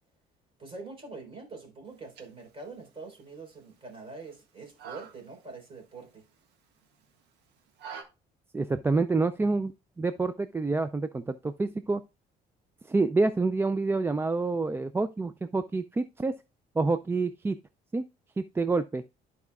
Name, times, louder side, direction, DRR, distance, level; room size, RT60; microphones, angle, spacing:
voice 1, 0.6-6.2, right 3 dB, 35° right, 3.8 m, -44 dB
sound 1, 1.9-8.0, right 7 dB, 85° right, 1.5 m, -50 dB
voice 2, 8.5-12.0 12.8-16.3 16.8-17.6 17.9-18.0 18.4-19.0, right 3 dB, 15° right, 0.4 m, -27 dB
13.5 x 4.7 x 2.3 m
cardioid pair, 110°, 17 cm